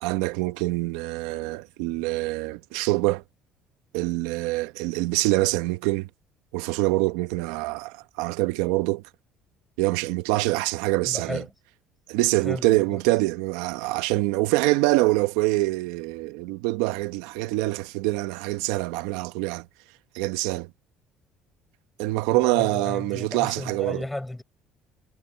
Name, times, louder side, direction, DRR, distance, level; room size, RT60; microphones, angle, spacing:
voice 1, 0.0-3.2 3.9-6.1 6.5-9.0 9.8-11.4 12.1-19.7 20.1-20.7 22.0-24.0, right 20 dB, 90° right, 1.1 m, -25 dB
voice 2, 11.0-11.5 12.4-13.0 22.3-24.4, left 1 dB, 10° left, 5.1 m, -34 dB
supercardioid pair, 90°, 0 cm